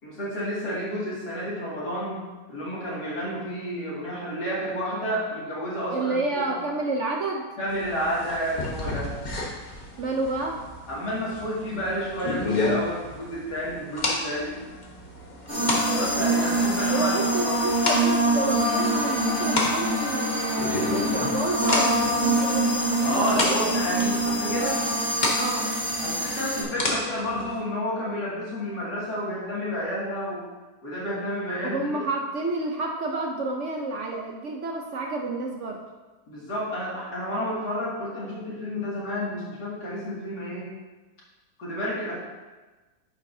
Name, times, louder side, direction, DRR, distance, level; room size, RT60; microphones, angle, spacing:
voice 1, 0.0-2.2 2.5-6.6 7.6-9.2 10.9-14.5 15.5-17.1 17.4-17.5 23.0-24.8 26.0-30.4 30.8-32.0 36.3-40.7 41.6-42.1, equal, 75° left, -7 dB, 2.9 m, -30 dB
voice 2, 5.9-7.5 10.0-10.7 16.9-24.0 25.4-25.8 31.6-35.8, right 3 dB, 60° right, 1 dB, 0.8 m, -30 dB
sound 1, 7.7-27.6, left 2 dB, 30° left, 1.2 m, -32 dB
sound 2, 15.5-26.6, right 1 dB, 10° right, 1.6 m, -25 dB
9.5 x 7.2 x 2.7 m, 1.2 s
omnidirectional pair, 1.7 m